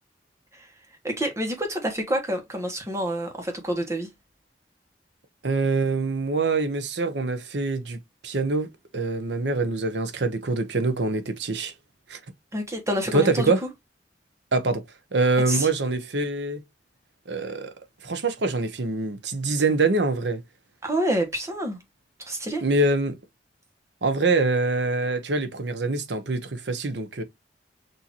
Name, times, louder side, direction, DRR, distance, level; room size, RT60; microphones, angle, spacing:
voice 1, 1.0-4.1 12.5-13.7 15.5-15.7 20.8-21.8 22.2-22.6, right 1 dB, 15° right, 1.2 m, -28 dB
voice 2, 5.4-8.0 8.2-8.7 8.9-11.7 12.1-12.2 13.1-13.6 14.5-14.8 15.1-16.6 17.3-17.7 18.0-20.4 22.6-23.1 24.0-27.2, right 3 dB, 75° right, 0.9 m, -24 dB
6.2 x 2.8 x 2.9 m
head